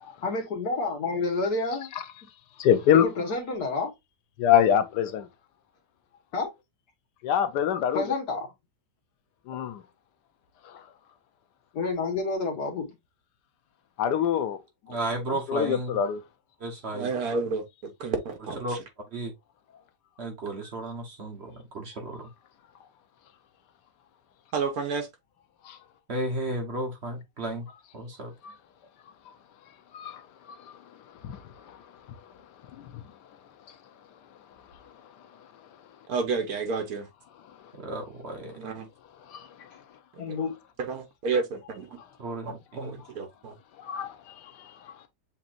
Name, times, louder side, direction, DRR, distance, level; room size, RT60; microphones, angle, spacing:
voice 1, 0.2-1.9 2.9-3.9 6.3-6.5 7.9-8.5 11.7-12.9 40.2-40.6, left 3 dB, 70° left, 1.8 m, -29 dB
voice 2, 2.6-3.0 4.4-5.3 7.2-8.0 9.5-9.8 10.6-10.8 14.0-14.6 15.3-16.2 25.6-25.8 28.4-28.5 29.9-30.2 30.5-30.6 31.2-31.8 32.7-33.0 39.3-39.7 43.8-45.1, left 9 dB, 90° left, 1.3 m, -25 dB
voice 3, 14.9-15.9 16.6-17.1 18.6-18.8 19.1-19.3 20.2-22.3 26.1-27.7 27.9-28.3 37.7-38.7 42.2-43.0, right 2 dB, 45° right, 1.2 m, -33 dB
voice 4, 16.9-18.8 24.5-25.1 36.1-37.1 38.6-38.9 40.3-40.4 40.8-41.9 42.4-43.5, right 4 dB, 65° right, 1.5 m, -31 dB
6.9 x 2.9 x 2.5 m
omnidirectional pair, 1.7 m